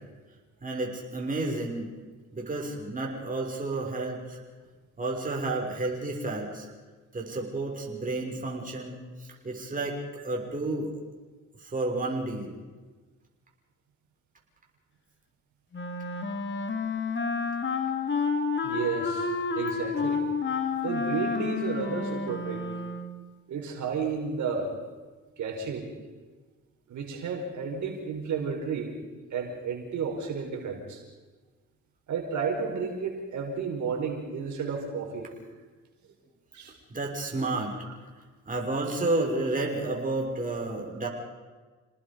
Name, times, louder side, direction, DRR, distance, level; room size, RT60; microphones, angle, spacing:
voice 1, 0.6-1.9 2.3-4.4 5.0-6.7 7.1-9.0 9.4-10.0 10.2-10.9 11.6-12.5 36.9-37.7 38.5-41.1, right 2 dB, 25° right, -1 dB, 6.1 m, -31 dB
Wind instrument woodwind instrument, 15.7-23.2, left 4 dB, 40° left, 2.4 m, -30 dB
voice 2, 18.6-20.2 20.8-22.7 23.5-24.7 25.4-25.9 26.9-28.9 29.3-31.0 32.1-35.3 36.1-36.2 36.5-36.7, right 5 dB, 70° right, 1 dB, 5.1 m, -32 dB
29.0 x 19.5 x 5.4 m, 1.3 s
cardioid pair, 90°, 30 cm